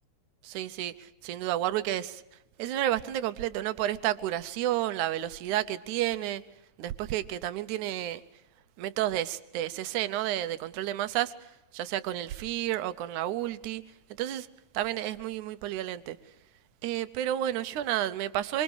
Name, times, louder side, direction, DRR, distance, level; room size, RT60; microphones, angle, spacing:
voice 1, 0.4-2.2 2.6-6.4 6.8-8.2 8.8-11.3 11.7-13.8 14.2-14.5 14.7-16.2 16.8-18.6, right 13 dB, 75° right, 12 dB, 2.3 m, -31 dB
26.0 x 25.0 x 4.9 m, 0.93 s
omnidirectional pair, 3.6 m